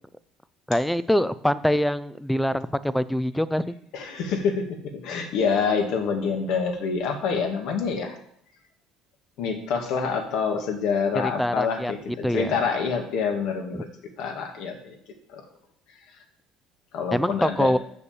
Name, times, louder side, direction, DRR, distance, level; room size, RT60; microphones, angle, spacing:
voice 1, 0.7-3.7 11.2-11.9 12.2-12.6 13.7-13.8 17.1-17.8, equal, 5° left, 16 dB, 0.4 m, -24 dB
voice 2, 3.9-8.2 9.4-13.9 14.2-15.0 15.3-15.4 16.9-17.7, left 5 dB, 70° left, 4 dB, 2.0 m, -27 dB
7.1 x 6.7 x 7.2 m, 0.69 s
cardioid pair, 120°, 0 cm